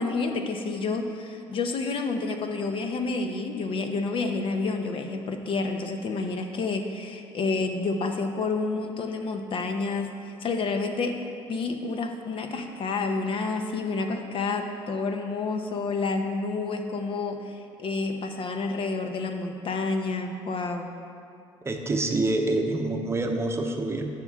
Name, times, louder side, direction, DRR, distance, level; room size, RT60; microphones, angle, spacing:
voice 1, 0.0-20.9, left 3 dB, 50° left, 5 dB, 0.8 m, -29 dB
voice 2, 21.6-24.1, right 2 dB, 25° right, 4 dB, 0.8 m, -26 dB
12.5 x 6.0 x 3.6 m, 2.4 s
cardioid pair, 100°, 11 cm